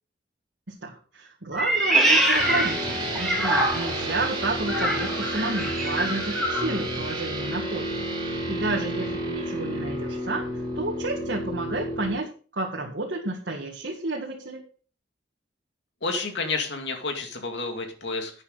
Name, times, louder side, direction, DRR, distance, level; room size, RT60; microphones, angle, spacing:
voice 1, 0.8-10.5 10.8-12.3 12.5-14.6, right 2 dB, 75° right, -2 dB, 1.9 m, -31 dB
Meow, 1.5-4.1 4.6-6.7, right 1 dB, ahead, 3.3 m, -24 dB
sound 1, 2.3-12.1, right 1 dB, 25° right, 5.0 m, -30 dB
voice 2, 8.7-9.1 16.0-18.4, left 3 dB, 75° left, 4 dB, 2.5 m, -31 dB
11.5 x 8.7 x 4.0 m, 0.40 s
head